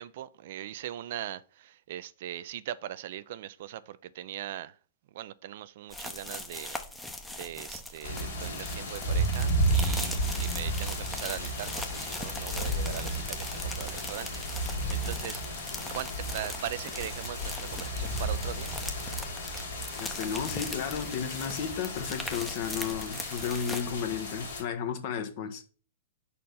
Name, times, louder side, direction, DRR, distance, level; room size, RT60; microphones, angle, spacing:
voice 1, 0.0-4.7 5.1-6.8 7.3-18.7, right 12 dB, 60° right, 0.4 m, -40 dB
sound 1, 5.9-23.8, left 2 dB, 10° left, 0.8 m, -41 dB
sound 2, 8.0-24.6, right 1 dB, 80° left, 2.3 m, -33 dB
voice 2, 20.0-25.6, left 7 dB, 50° left, 1.1 m, -33 dB
5.1 x 4.3 x 5.4 m
hypercardioid pair, 115°, 0 cm